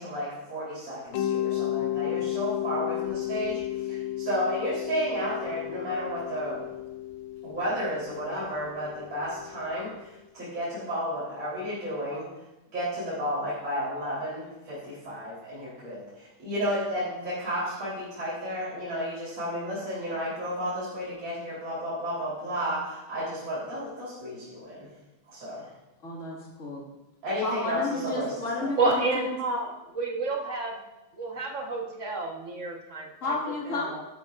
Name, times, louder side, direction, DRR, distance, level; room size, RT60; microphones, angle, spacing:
voice 1, 0.0-3.6 3.9-6.6 7.4-9.9 10.3-12.3 12.7-24.9 25.3-25.7 27.2-28.7, equal, 65° right, -10 dB, 4.7 m, -32 dB
Mallet percussion, 1.1-9.9, left 13 dB, 80° left, 1.4 m, -33 dB
voice 2, 26.0-26.8 27.4-29.4 33.2-33.9, left 2 dB, 35° left, -4 dB, 2.6 m, -31 dB
voice 3, 28.8-30.8 31.1-33.3 33.9-34.0, right 3 dB, 40° right, 1 dB, 1.5 m, -30 dB
13.0 x 11.5 x 2.6 m, 0.97 s
omnidirectional pair, 2.3 m